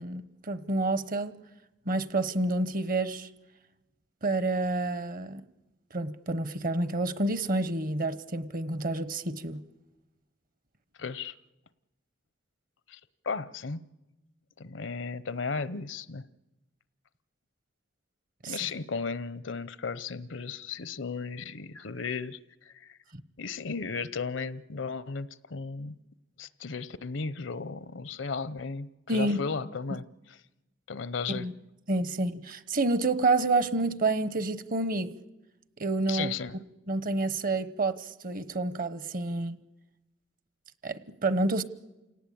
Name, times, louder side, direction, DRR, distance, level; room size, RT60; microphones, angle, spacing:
voice 1, 0.0-1.4 1.9-3.3 4.2-5.4 5.9-9.6 18.4-18.6 29.1-29.4 31.3-31.5 31.9-35.1 35.8-36.4 36.9-39.6 40.8-41.6, right 2 dB, 45° right, 1.0 m, -29 dB
voice 2, 11.0-11.3 12.9-13.0 13.2-13.8 14.6-16.2 18.5-23.0 23.4-26.0 26.4-30.4 30.9-31.5 36.1-36.6, left 5 dB, 70° left, 0.7 m, -35 dB
29.0 x 18.0 x 8.7 m
head